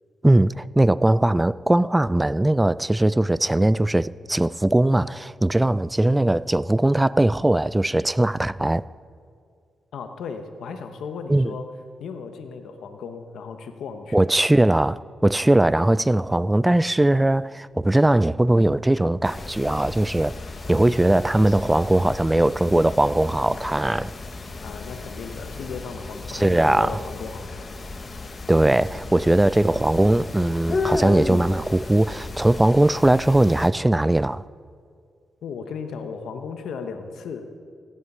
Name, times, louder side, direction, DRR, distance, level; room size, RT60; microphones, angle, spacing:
voice 1, 0.2-8.8 11.3-11.5 14.1-20.4 20.7-24.1 26.3-27.0 28.5-34.4, right 1 dB, 15° right, 0.3 m, -20 dB
voice 2, 9.9-11.7 12.0-14.3 24.6-27.7 35.4-37.5, left 5 dB, 85° left, 1.0 m, -35 dB
sound 1, 19.2-33.7, left 3 dB, 45° left, 1.1 m, -34 dB
16.0 x 9.7 x 5.5 m
cardioid pair, 60°, 0 cm